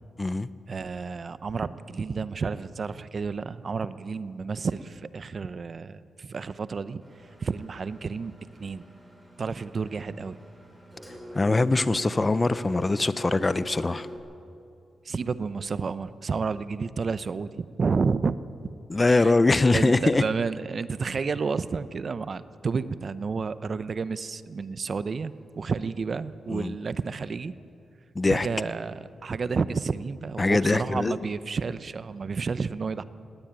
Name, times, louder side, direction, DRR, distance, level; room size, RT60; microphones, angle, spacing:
voice 1, 0.7-7.0 7.4-8.3 8.6-8.8 9.4-10.4 15.0-18.4 19.1-19.3 19.7-27.5 28.3-33.0, right 5 dB, 45° right, 14 dB, 0.7 m, -30 dB
Engine, 7.0-14.2, equal, 5° right, 5.5 m, -44 dB
voice 2, 11.3-14.1 18.9-20.2 26.5-26.8 28.1-28.5 30.4-31.2, left 2 dB, 25° left, 16 dB, 0.6 m, -22 dB
19.0 x 17.5 x 8.9 m, 2.5 s
cardioid pair, 90°, 0 cm